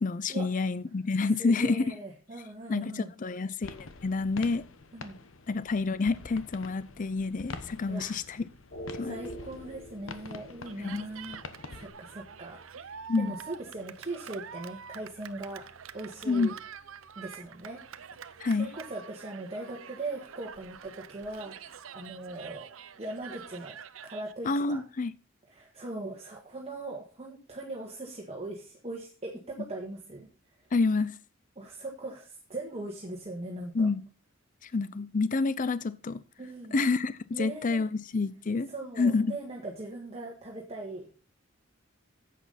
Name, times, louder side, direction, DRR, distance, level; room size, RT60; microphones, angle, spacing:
voice 1, 0.0-1.9 2.7-4.6 5.5-8.4 9.0-9.2 10.8-11.0 13.1-13.3 16.3-16.5 18.4-18.7 24.4-25.1 30.7-31.2 33.7-34.0 34.6-36.2 36.7-38.7 39.0-39.3, left 3 dB, 40° left, 0.5 m, -28 dB
voice 2, 1.4-3.1 4.9-5.2 7.9-8.2 9.0-11.4 11.7-15.6 15.9-16.5 17.2-17.8 18.1-22.7 23.0-23.8 24.0-24.8 25.5-30.3 30.6-30.7 31.6-33.9 36.4-36.8 37.3-37.9 38.7-41.1, right 2 dB, 30° right, 1.8 m, -40 dB
sound 1, 3.6-11.9, left 3 dB, 75° left, 1.1 m, -46 dB
sound 2, 8.7-18.9, equal, 55° left, 3.4 m, -50 dB
Cheering, 10.7-24.3, right 7 dB, 90° right, 0.7 m, -46 dB
10.5 x 8.3 x 4.1 m
head